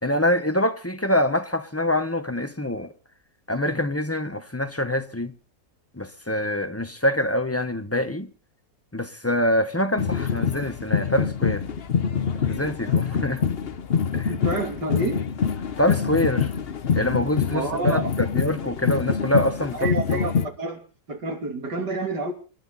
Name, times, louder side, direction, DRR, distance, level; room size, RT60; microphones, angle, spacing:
voice 1, 0.0-2.9 3.5-5.3 5.9-8.3 8.9-11.7 12.5-13.4 14.1-14.3 15.8-16.5 17.0-20.2, left 1 dB, 10° left, 0.7 m, -25 dB
sound 1, 10.0-20.5, left 6 dB, 45° left, 0.9 m, -25 dB
voice 2, 14.3-15.2 17.5-18.1 19.7-20.3 20.6-20.8 21.1-22.3, right 2 dB, 70° right, 3.6 m, -28 dB
29.0 x 11.5 x 4.1 m
omnidirectional pair, 1.9 m